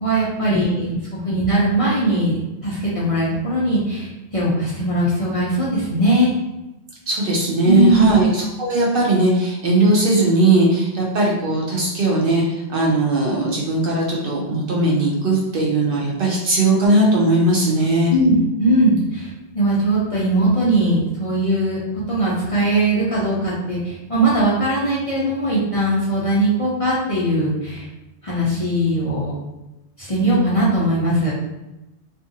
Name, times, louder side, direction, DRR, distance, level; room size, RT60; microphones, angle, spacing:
voice 1, 0.0-6.3 7.6-8.2 18.1-19.3 19.5-21.8 22.1-27.9 28.2-29.3 30.0-31.3, right 1 dB, 40° left, -8 dB, 0.6 m, -20 dB
voice 2, 7.1-18.1, right 2 dB, 60° right, -3 dB, 0.7 m, -18 dB
2.5 x 2.5 x 2.6 m, 0.97 s
omnidirectional pair, 1.2 m